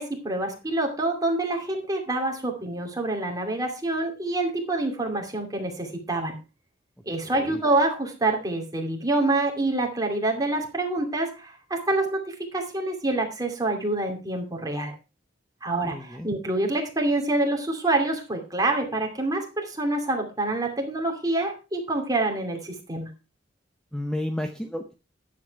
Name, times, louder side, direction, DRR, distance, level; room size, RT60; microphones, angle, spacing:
voice 1, 0.0-6.4 7.1-14.9 15.6-23.1, right 2 dB, 20° right, 2 dB, 2.6 m, -26 dB
voice 2, 7.2-7.6 15.7-16.3 23.9-24.9, left 1 dB, 5° left, 5 dB, 0.8 m, -32 dB
10.5 x 7.6 x 4.7 m, 0.31 s
head